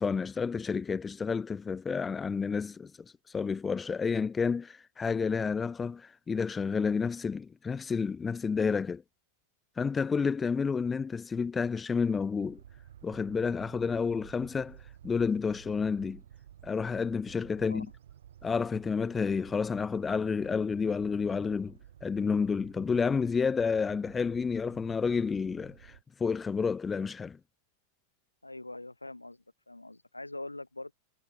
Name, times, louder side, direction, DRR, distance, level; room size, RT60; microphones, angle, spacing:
voice 1, 0.0-9.0 9.8-12.6 13.0-14.8 15.0-16.2 16.6-17.9 18.4-27.4, left 5 dB, 15° left, 0.4 m, -30 dB
sound 1, 12.3-26.0, right 10 dB, 60° right, 5.0 m, -53 dB
voice 2, 28.4-30.9, left 2 dB, 85° left, 1.1 m, -43 dB
figure-of-eight pair, 90°, 0 cm